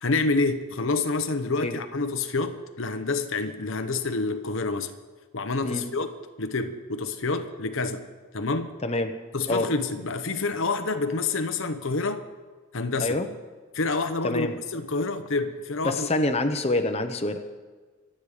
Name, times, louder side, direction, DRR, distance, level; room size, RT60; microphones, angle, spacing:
voice 1, 0.0-4.9 5.3-6.1 6.4-8.0 8.3-8.7 9.3-12.2 12.7-13.2 13.7-14.5 14.7-16.2, left 3 dB, 65° left, 8 dB, 0.9 m, -28 dB
voice 2, 8.8-9.1 9.5-9.7 13.0-13.3 14.2-14.5 15.8-17.4, left 2 dB, 30° left, 6 dB, 0.9 m, -26 dB
25.0 x 8.8 x 5.0 m, 1.4 s
head